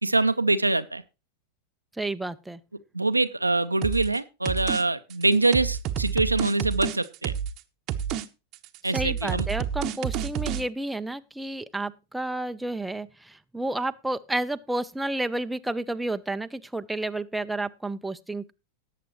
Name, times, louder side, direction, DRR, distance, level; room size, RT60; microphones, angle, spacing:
voice 1, 0.0-1.0 2.9-7.3 8.8-9.5, right 2 dB, 85° right, 0.6 m, -24 dB
voice 2, 2.0-2.6 8.9-18.5, right 2 dB, 5° right, 0.6 m, -31 dB
sound 1, 3.8-4.2 4.5-4.8 5.1-7.6 7.9-8.3 8.5-10.6, right 9 dB, 40° right, 0.9 m, -29 dB
18.0 x 7.6 x 3.1 m
figure-of-eight pair, 90°, 0 cm